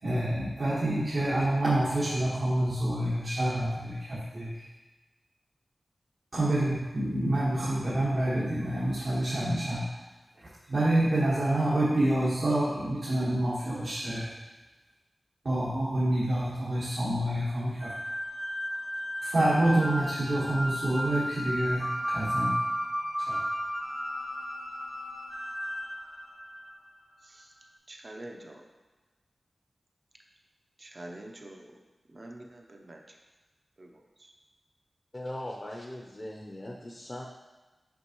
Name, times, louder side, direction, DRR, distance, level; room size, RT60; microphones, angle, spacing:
voice 1, 0.0-4.6 6.3-9.8 10.7-14.3 15.4-17.9 19.2-22.5 23.2-23.4, right 1 dB, 70° right, -9 dB, 1.5 m, -27 dB
sound 1, 17.8-27.0, equal, 5° right, 0.6 m, -34 dB
voice 2, 27.2-27.5 27.9-28.6 30.8-31.7 32.1-33.0 33.8-34.3, right 1 dB, 45° right, 1 dB, 0.8 m, -46 dB
voice 3, 35.1-37.3, left 1 dB, 30° left, -1 dB, 0.7 m, -39 dB
6.2 x 5.4 x 3.0 m, 1.2 s
wide cardioid pair, 70°, 0 cm